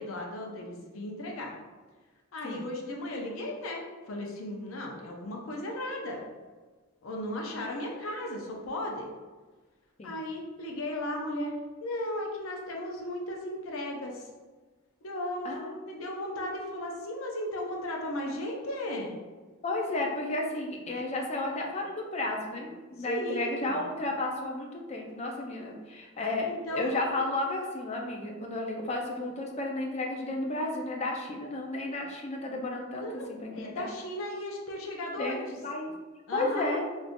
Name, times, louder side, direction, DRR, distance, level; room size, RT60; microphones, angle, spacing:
voice 1, 0.0-1.5 2.3-6.2 7.0-9.1 10.0-11.5 11.8-14.3 15.0-19.2 23.0-23.8 26.2-27.2 33.0-35.4 36.3-36.7, left 1 dB, 80° left, 0 dB, 0.6 m, -36 dB
voice 2, 19.6-33.1 33.4-33.9 35.2-35.9 36.3-36.9, left 2 dB, 30° left, 1 dB, 0.4 m, -33 dB
3.6 x 2.5 x 2.5 m, 1.4 s
head